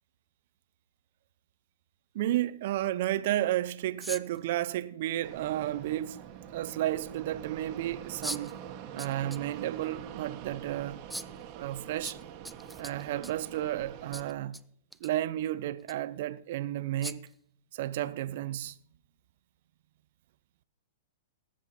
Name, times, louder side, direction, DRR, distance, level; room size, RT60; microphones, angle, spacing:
voice 1, 2.1-6.2 6.5-8.6 8.9-11.0 11.5-12.2 12.8-14.6 15.0-17.3 17.7-18.7, right 13 dB, 55° right, 0.7 m, -32 dB
sound 1, 4.0-4.4 5.9-6.0 8.2-8.5 9.0-9.4 9.8-9.9 11.1-11.4 12.0-13.5 14.1-14.6 14.9-15.1 15.8-15.9 17.0-17.3, right 1 dB, ahead, 0.4 m, -40 dB
Fixed-wing aircraft airplane, 5.2-14.3, right 9 dB, 40° right, 1.5 m, -45 dB
18.5 x 7.6 x 4.3 m
hypercardioid pair, 125°, 0 cm